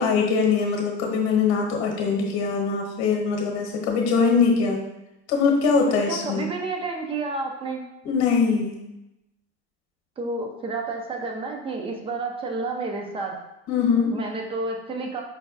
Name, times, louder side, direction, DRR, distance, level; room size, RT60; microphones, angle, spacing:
voice 1, 0.0-4.8 5.3-6.4 8.0-8.8 13.7-14.2, left 5 dB, 50° left, 1 dB, 1.0 m, -22 dB
voice 2, 6.1-7.8 10.2-13.4 14.1-15.2, right 3 dB, 15° right, 2 dB, 0.4 m, -30 dB
5.2 x 2.2 x 2.4 m, 0.91 s
supercardioid pair, 115°, 35 cm